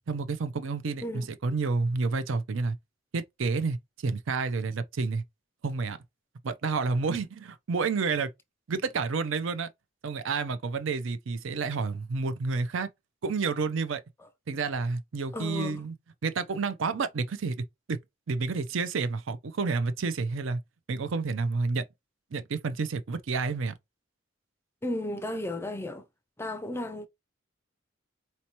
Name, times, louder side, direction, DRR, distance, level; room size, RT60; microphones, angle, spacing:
voice 1, 0.1-2.8 3.1-5.2 5.6-6.0 6.4-8.3 8.7-9.7 10.0-12.9 13.2-14.0 14.5-15.9 16.2-18.0 18.3-20.6 20.9-21.8 22.3-23.8, right 4 dB, 70° right, 0.5 m, -30 dB
voice 2, 15.3-15.8 24.8-26.0 26.4-27.1, left 1 dB, 10° left, 0.4 m, -34 dB
4.3 x 2.8 x 2.9 m
head